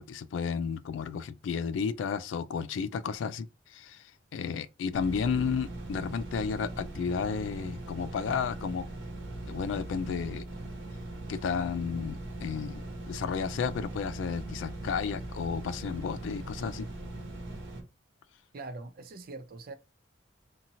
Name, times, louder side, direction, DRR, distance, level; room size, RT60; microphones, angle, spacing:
voice 1, 0.0-4.0 4.3-8.9 9.5-10.4 11.3-16.9, left 6 dB, 75° left, 0.3 m, -32 dB
sound 1, 4.9-17.8, right 1 dB, 85° right, 1.0 m, -40 dB
voice 2, 18.5-19.7, right 3 dB, 50° right, 0.5 m, -42 dB
2.8 x 2.6 x 2.6 m
head